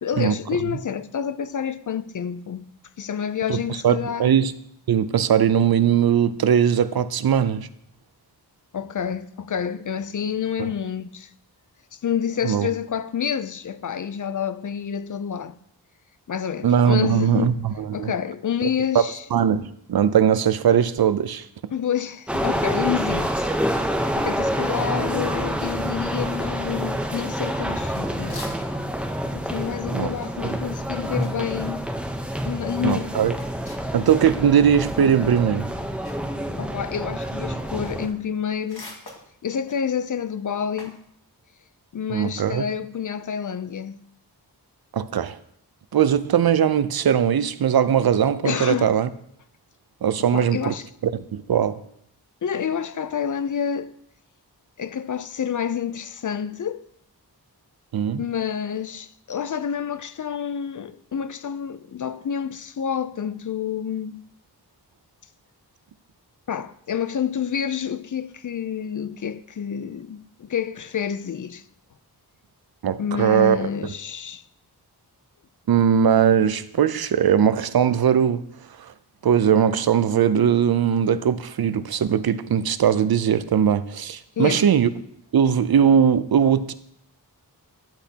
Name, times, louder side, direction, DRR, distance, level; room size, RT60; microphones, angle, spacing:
voice 1, 0.0-2.7 3.0-4.4 8.7-11.3 11.9-15.6 16.3-17.6 17.9-19.2 21.7-23.5 24.2-28.5 29.3-31.9 32.4-33.2 36.6-38.9 39.4-41.0 41.9-44.0 48.4-48.9 50.3-50.9 52.4-53.9 54.8-56.8 58.2-64.2 66.5-71.6 73.0-74.4 84.4-84.7, left 8 dB, 50° left, 0.5 m, -28 dB
voice 2, 3.8-4.5 4.9-7.7 10.6-10.7 12.4-12.7 16.6-18.1 18.9-19.0 19.3-21.4 29.9-30.1 32.8-33.4 33.9-35.7 42.1-42.6 44.9-45.4 45.9-49.1 50.0-50.7 51.0-51.8 57.9-58.2 72.8-73.7 75.7-78.4 79.2-84.9 85.3-86.7, right 8 dB, 65° right, 0.5 m, -20 dB
sound 1, 22.3-38.1, equal, 5° right, 0.7 m, -27 dB
sound 2, 27.0-29.0 29.2-34.5 34.8-41.1, left 2 dB, 70° left, 2.0 m, -46 dB
12.0 x 8.0 x 2.8 m
wide cardioid pair, 100°, 40 cm